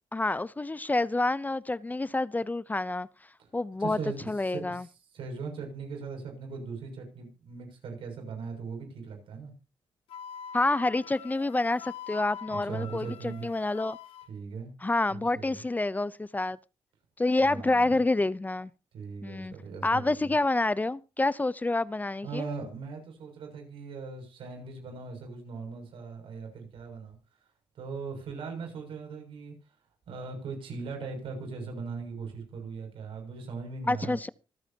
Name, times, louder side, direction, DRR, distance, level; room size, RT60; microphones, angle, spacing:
voice 1, 0.1-3.1 3.5-4.0 4.3-4.8 10.5-14.0 14.8-16.6 17.2-18.7 19.2-19.5 19.8-22.5 33.9-34.3, left 2 dB, 20° left, 0.6 m, -28 dB
voice 2, 3.8-9.5 12.5-13.5 14.3-14.7 15.1-15.6 17.4-18.0 18.9-20.3 22.2-27.2 27.8-29.6 30.1-34.2, right 4 dB, 80° right, 6.8 m, -39 dB
Wind instrument woodwind instrument, 10.1-14.3, left 7 dB, 90° left, 1.9 m, -44 dB
26.0 x 8.9 x 2.9 m
cardioid pair, 85°, 9 cm